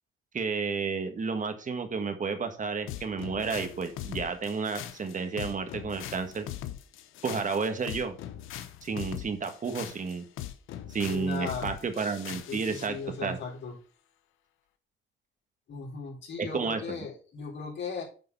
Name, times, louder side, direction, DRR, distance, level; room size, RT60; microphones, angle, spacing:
voice 1, 0.3-6.5 7.2-8.1 8.8-10.2 10.9-13.4 16.4-17.1, right 5 dB, 40° right, 8 dB, 1.5 m, -31 dB
sound 1, 2.9-12.9, left 12 dB, 90° left, 0.9 m, -41 dB
voice 2, 11.1-11.7 12.5-13.7 15.7-18.0, left 5 dB, 65° left, -3 dB, 4.1 m, -37 dB
9.3 x 3.9 x 5.4 m, 0.38 s
cardioid pair, 90°, 20 cm